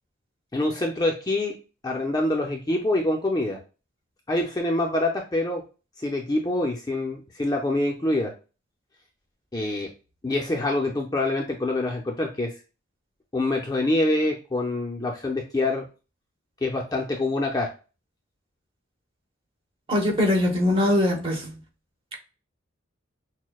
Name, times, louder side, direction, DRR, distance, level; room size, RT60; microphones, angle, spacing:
voice 1, 0.5-1.6 1.8-3.6 4.3-5.6 6.0-8.3 9.5-9.9 10.2-12.5 13.3-15.8 16.6-17.7, left 2 dB, 20° left, 0.5 m, -25 dB
voice 2, 19.9-21.6, left 1 dB, 25° right, 1.1 m, -22 dB
6.2 x 2.1 x 2.3 m
head